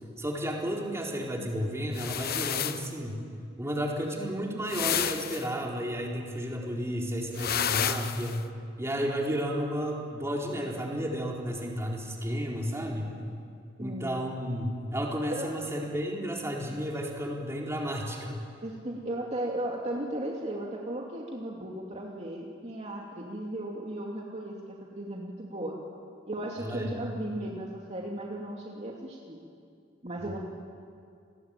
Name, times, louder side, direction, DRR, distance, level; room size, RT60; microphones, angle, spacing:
voice 1, 0.2-3.3 3.6-8.5 8.8-13.1 13.8-18.5 26.6-27.0, equal, 15° right, -1 dB, 4.2 m, -32 dB
sound 1, 1.9-2.9 4.7-5.5 7.3-8.4, left 9 dB, 50° left, 1.0 m, -30 dB
voice 2, 13.8-14.1 15.3-15.5 18.6-25.8 26.3-29.4 30.0-30.4, right 1 dB, 35° right, -2 dB, 2.7 m, -36 dB
29.5 x 21.0 x 9.1 m, 2.3 s
head